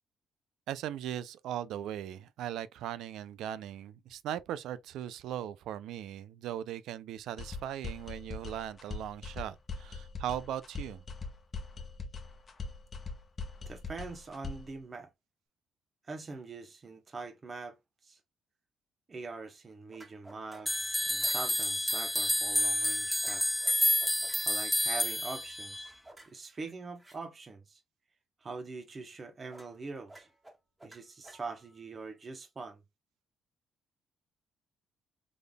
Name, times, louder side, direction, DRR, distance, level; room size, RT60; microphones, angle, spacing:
voice 1, 0.7-11.0, right 11 dB, 85° right, 0.3 m, -39 dB
sound 1, 7.4-14.8, left 4 dB, 40° left, 0.9 m, -42 dB
voice 2, 13.7-15.1 16.0-17.8 18.0-18.2 19.1-23.6 24.5-25.9 26.3-27.8 28.4-30.3 30.8-32.8, right 4 dB, 35° right, 0.8 m, -43 dB
sound 2, 19.9-20.8 21.2-21.5 23.2-24.5 26.0-27.2 29.5-29.8 30.1-31.8, right 1 dB, 15° right, 1.7 m, -54 dB
sound 3, 20.7-25.9, left 1 dB, ahead, 0.4 m, -29 dB
3.8 x 3.4 x 2.2 m
cardioid pair, 90°, 0 cm